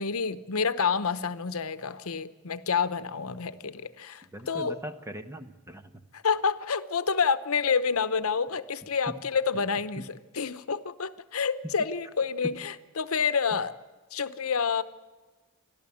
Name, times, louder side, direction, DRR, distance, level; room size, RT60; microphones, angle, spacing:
voice 1, 0.0-4.8 6.1-10.0 10.3-13.7 14.1-14.8, left 5 dB, 80° left, 13 dB, 0.9 m, -28 dB
voice 2, 4.2-6.0 9.1-9.2 10.0-10.1 11.6-11.7 12.4-12.5 13.5-13.6, right 1 dB, 15° right, 8 dB, 1.1 m, -39 dB
30.0 x 12.5 x 8.5 m, 1.3 s
head